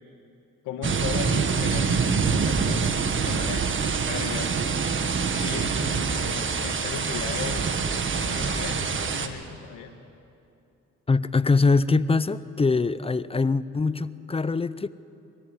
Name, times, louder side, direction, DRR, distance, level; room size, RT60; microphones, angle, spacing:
voice 1, 0.6-4.5 5.3-7.8 8.2-9.9, left 7 dB, 90° left, 5 dB, 1.6 m, -36 dB
sound 1, 0.8-9.3, right 5 dB, 40° right, 1.6 m, -25 dB
voice 2, 11.1-14.9, left 3 dB, 20° left, 16 dB, 0.6 m, -23 dB
24.5 x 15.5 x 9.7 m, 2.7 s
cardioid pair, 90°, 30 cm